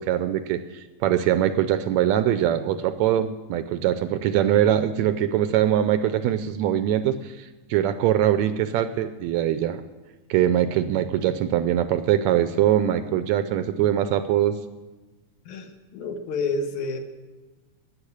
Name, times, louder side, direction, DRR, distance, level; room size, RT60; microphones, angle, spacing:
voice 1, 0.0-9.8 10.3-14.6, right 11 dB, 80° right, 11 dB, 1.7 m, -22 dB
voice 2, 15.5-17.0, left 3 dB, 75° left, 5 dB, 2.6 m, -29 dB
13.0 x 9.1 x 8.5 m, 1.2 s
omnidirectional pair, 3.5 m